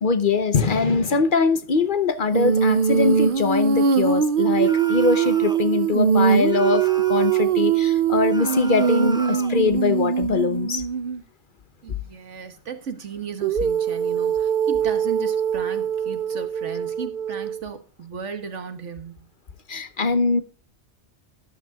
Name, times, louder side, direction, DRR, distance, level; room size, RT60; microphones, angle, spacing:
voice 1, 0.0-10.9 19.7-20.4, left 4 dB, 50° left, 0.9 m, -22 dB
Female singing, 2.3-11.2 13.4-17.6, right 7 dB, 55° right, 0.8 m, -22 dB
sound 1, 4.6-5.7 6.4-7.6 8.3-9.6, right 1 dB, 5° right, 0.5 m, -37 dB
voice 2, 11.8-19.3, right 6 dB, 85° right, 1.7 m, -35 dB
13.0 x 12.0 x 2.3 m
omnidirectional pair, 1.2 m